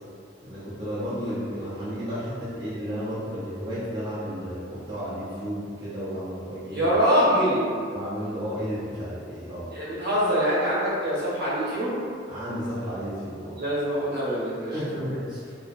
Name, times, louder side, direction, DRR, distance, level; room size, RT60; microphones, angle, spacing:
voice 1, 0.4-6.9 7.9-9.7 12.3-13.6 14.7-15.5, equal, 25° right, -12 dB, 0.4 m, -32 dB
voice 2, 6.7-7.7 9.7-12.0 13.6-14.8, equal, 60° right, -9 dB, 0.8 m, -24 dB
2.4 x 2.1 x 2.4 m, 2.3 s
head